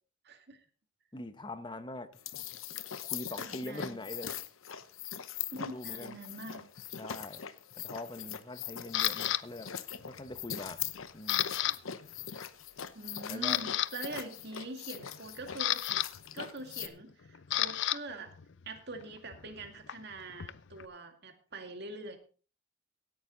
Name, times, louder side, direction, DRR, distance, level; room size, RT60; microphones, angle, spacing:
voice 1, 0.2-0.7 3.4-4.0 5.5-6.6 12.9-15.8 16.3-18.4 18.6-22.2, right 2 dB, 50° right, 2.1 m, -44 dB
voice 2, 1.1-2.1 3.0-4.4 5.5-6.2 7.0-7.4 7.8-9.7 10.1-11.5 13.3-13.6, left 1 dB, 20° left, 0.9 m, -43 dB
sound 1, 2.1-16.9, left 9 dB, 75° left, 0.9 m, -41 dB
Camera, 8.9-9.4 10.0-10.3 10.7-11.8 12.0-12.2 12.8-12.9 13.3-13.9 15.1-18.0 18.3-20.9, left 12 dB, 60° left, 0.5 m, -33 dB
17.0 x 9.1 x 3.9 m
head